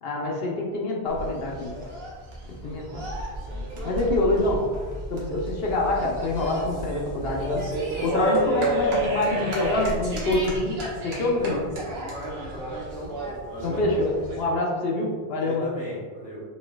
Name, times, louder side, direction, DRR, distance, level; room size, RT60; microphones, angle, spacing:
voice 1, 0.0-1.7 2.6-3.0 3.8-4.7 5.1-7.6 8.0-11.6 13.6-15.7, left 2 dB, 65° left, -1 dB, 0.8 m, -26 dB
sound 1, 1.1-14.4, right 1 dB, 70° right, 1.1 m, -31 dB
sound 2, 2.9-9.1, right 1 dB, 40° right, 0.5 m, -39 dB
voice 2, 11.3-13.1 13.4-14.0 15.2-16.4, equal, 10° left, -6 dB, 0.5 m, -37 dB
4.2 x 3.1 x 2.2 m, 1.5 s
omnidirectional pair, 1.1 m